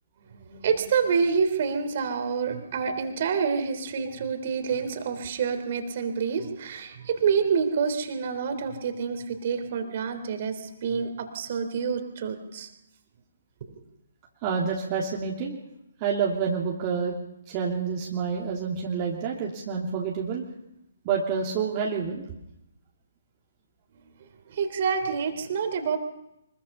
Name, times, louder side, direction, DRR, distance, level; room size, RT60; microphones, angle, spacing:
voice 1, 0.2-12.7 13.7-13.8 24.2-26.0, right 6 dB, 45° right, 7 dB, 3.4 m, -28 dB
voice 2, 14.4-15.6 16.0-17.2 17.5-20.4 21.0-22.2, right 6 dB, 30° right, -2 dB, 2.9 m, -28 dB
24.5 x 22.0 x 5.6 m, 0.84 s
figure-of-eight pair, 135°, 0 cm